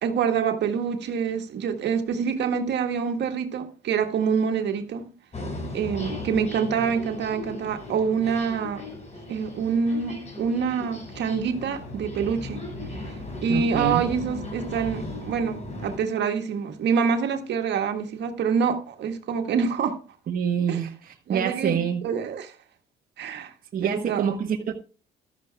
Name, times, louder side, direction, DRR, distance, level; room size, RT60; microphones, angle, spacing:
voice 1, 0.0-5.1 5.7-8.8 9.3-12.6 13.0-20.0 20.7-20.8 21.3-22.6 23.2-23.5 23.8-24.2, right 6 dB, 60° right, 1.7 m, -26 dB
sound 1, 5.3-16.0, left 2 dB, 35° left, 5.0 m, -37 dB
voice 2, 13.5-14.0 20.3-22.0 23.7-24.7, right 8 dB, 45° right, 1.3 m, -26 dB
14.5 x 12.5 x 2.3 m
supercardioid pair, 65°, 20 cm